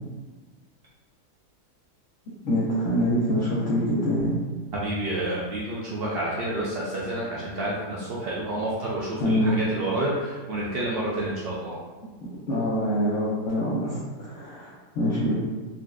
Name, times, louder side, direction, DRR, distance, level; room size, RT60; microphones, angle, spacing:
voice 1, 2.4-4.3 9.2-9.5 12.5-15.3, equal, 60° left, -8 dB, 0.8 m, -25 dB
voice 2, 4.7-11.8, right 1 dB, 85° right, -6 dB, 0.5 m, -29 dB
4.0 x 2.3 x 2.2 m, 1.3 s
omnidirectional pair, 1.6 m